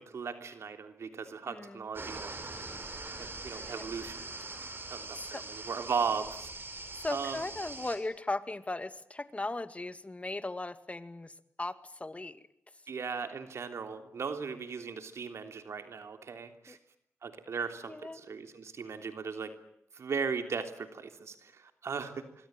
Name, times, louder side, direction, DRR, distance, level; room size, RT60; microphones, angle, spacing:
voice 1, 0.0-2.4 3.2-4.2 4.9-6.5 7.1-7.4 12.9-16.8 17.2-19.5 19.9-22.3, right 5 dB, 80° right, 7 dB, 3.2 m, -37 dB
voice 2, 1.5-1.9 3.7-3.8 5.1-5.4 6.9-12.4 16.7-16.8 17.9-18.3, left 2 dB, 25° left, 12 dB, 2.1 m, -38 dB
sound 1, 1.9-8.0, right 2 dB, 50° right, 7.1 m, -42 dB
25.5 x 22.5 x 9.0 m, 0.74 s
cardioid pair, 60°, 5 cm